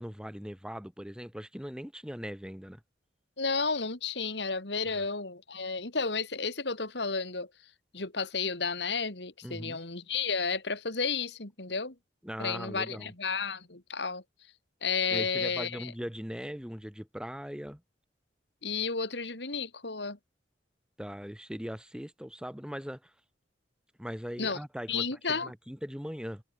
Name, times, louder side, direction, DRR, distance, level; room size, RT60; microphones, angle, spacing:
voice 1, 0.0-2.8 4.9-5.0 9.4-9.8 12.2-13.1 15.1-17.8 21.0-23.1 24.0-26.4, equal, 5° right, 2.1 m, -40 dB
voice 2, 3.4-7.5 7.9-11.9 12.4-14.2 14.8-15.9 18.6-20.2 24.4-24.6 24.9-25.5, left 5 dB, 70° left, 3.1 m, -32 dB
head